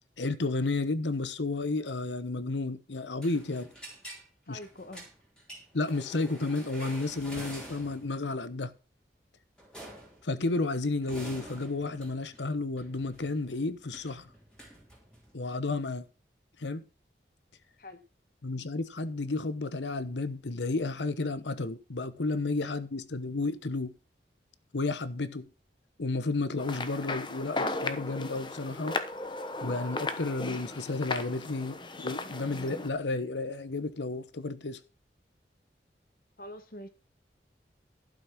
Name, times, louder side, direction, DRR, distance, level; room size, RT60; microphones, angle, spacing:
voice 1, 0.2-3.7 4.5-4.6 5.7-8.7 10.2-14.3 15.3-16.0 16.6-16.9 18.4-23.9 24.7-25.5 26.0-29.0 29.6-34.8, left 3 dB, 85° left, 1.0 m, -32 dB
sound 1, 3.2-4.2 4.6-8.1 9.6-10.3 10.8-15.3, right 1 dB, 5° left, 3.3 m, -47 dB
voice 2, 4.5-5.1 17.8-18.0 36.4-36.9, left 1 dB, 50° left, 1.5 m, -44 dB
sound 2, 26.6-32.9, left 2 dB, 25° left, 0.9 m, -36 dB
12.0 x 6.4 x 6.0 m
head